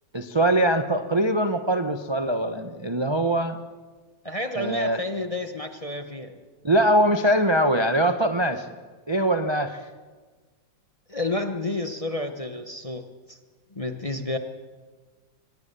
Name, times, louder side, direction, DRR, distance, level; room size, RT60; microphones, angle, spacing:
voice 1, 0.1-3.6 4.5-5.0 6.6-8.7 9.1-9.9, right 1 dB, 25° right, 7 dB, 0.6 m, -22 dB
voice 2, 4.2-6.4 11.1-13.4 13.7-14.4, left 2 dB, 25° left, 7 dB, 0.9 m, -30 dB
24.0 x 20.5 x 6.8 m, 1.4 s
omnidirectional pair, 2.0 m